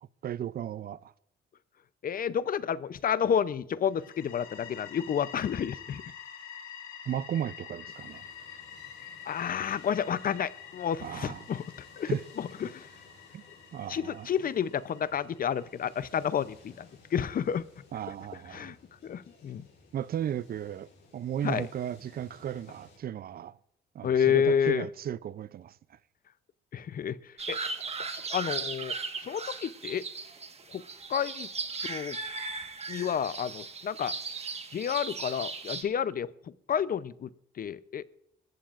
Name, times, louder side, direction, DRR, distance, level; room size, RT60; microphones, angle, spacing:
voice 1, 0.2-1.1 7.1-8.2 11.0-11.5 12.1-12.2 13.3-13.4 13.7-14.3 17.9-18.7 19.9-23.6 23.9-26.0, right 10 dB, 50° right, 0.4 m, -35 dB
voice 2, 2.0-6.0 9.3-11.6 12.0-12.9 13.9-16.9 17.1-17.6 18.5-18.8 19.0-19.7 21.4-21.7 24.0-24.9 26.7-27.2 27.5-27.6 28.3-28.9 29.2-30.0 30.7-30.8 31.1-31.5 31.9-32.2 32.9-34.1 34.7-36.3 36.7-37.3 37.6-38.0, left 8 dB, 45° left, 0.6 m, -30 dB
sound 1, 3.9-16.6, left 8 dB, 80° left, 2.5 m, -48 dB
sound 2, 7.8-23.0, left 3 dB, 65° left, 6.7 m, -58 dB
sound 3, 27.4-35.8, right 4 dB, 30° right, 1.4 m, -37 dB
24.0 x 14.5 x 2.5 m
cardioid pair, 90°, 20 cm